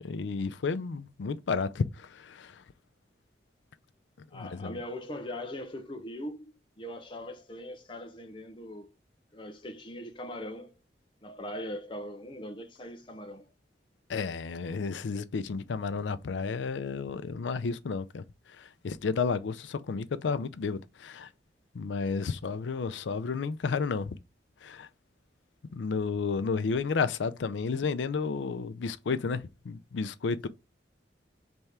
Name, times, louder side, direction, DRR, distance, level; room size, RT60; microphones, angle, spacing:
voice 1, 0.0-2.6 4.3-4.8 14.1-21.3 21.7-24.2 24.6-24.9 25.7-30.5, left 5 dB, 85° left, 0.4 m, -32 dB
voice 2, 4.3-8.9 9.3-10.8 11.2-13.5, left 1 dB, 30° left, 0.7 m, -40 dB
4.2 x 3.5 x 3.3 m
head